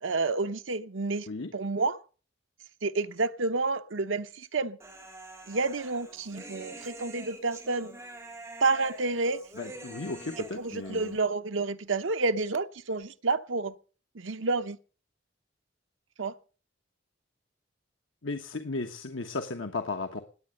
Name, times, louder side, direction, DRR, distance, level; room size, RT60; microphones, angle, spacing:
voice 1, 0.0-2.0 2.8-4.8 5.5-8.0 8.6-9.4 10.4-13.7 14.1-14.8 16.2-16.3, right 3 dB, 80° right, 0.9 m, -29 dB
Human voice, 4.8-11.2, right 2 dB, 15° right, 2.8 m, -46 dB
voice 2, 9.6-11.1 18.2-20.2, left 3 dB, 80° left, 1.3 m, -35 dB
19.5 x 8.7 x 6.6 m
head